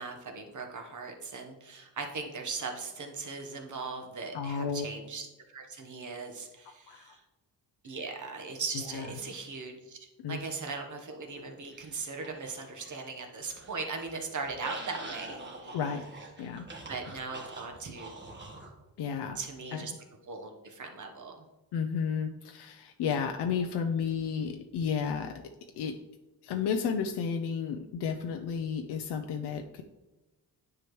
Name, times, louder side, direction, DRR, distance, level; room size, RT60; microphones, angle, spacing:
voice 1, 0.0-7.2 7.8-15.7 16.9-18.2 19.3-19.9 20.3-21.4, right 4 dB, 50° right, 3 dB, 1.1 m, -39 dB
voice 2, 4.3-4.9 6.9-7.1 8.9-9.1 10.2-10.4 15.7-16.0 16.4-16.6 19.0-19.4 19.7-19.9 21.7-25.3 25.8-25.9 26.4-29.8, left 6 dB, 90° left, 4 dB, 0.6 m, -32 dB
sound 1, 11.7-13.1 13.4-18.7, right 2 dB, 30° right, 1.3 m, -45 dB
9.7 x 4.9 x 3.1 m, 1.1 s
cardioid pair, 115°, 39 cm